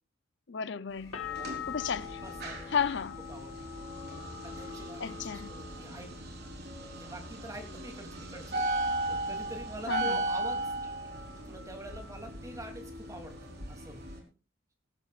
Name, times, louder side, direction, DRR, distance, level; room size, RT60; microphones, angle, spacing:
voice 1, 0.5-1.3 1.7-2.2 2.7-3.2 5.0-5.5 9.9-10.2, left 6 dB, 60° left, 0.6 m, -33 dB
sound 1, 1.1-6.8 7.1-7.8, left 10 dB, 85° left, 1.7 m, -44 dB
sound 2, 1.1-14.2, right 2 dB, 50° right, 4.0 m, -37 dB
voice 2, 2.2-2.7 3.3-3.6 4.4-6.1 6.9-10.8 11.4-14.3, right 1 dB, 15° right, 3.0 m, -46 dB
21.0 x 12.0 x 2.5 m
head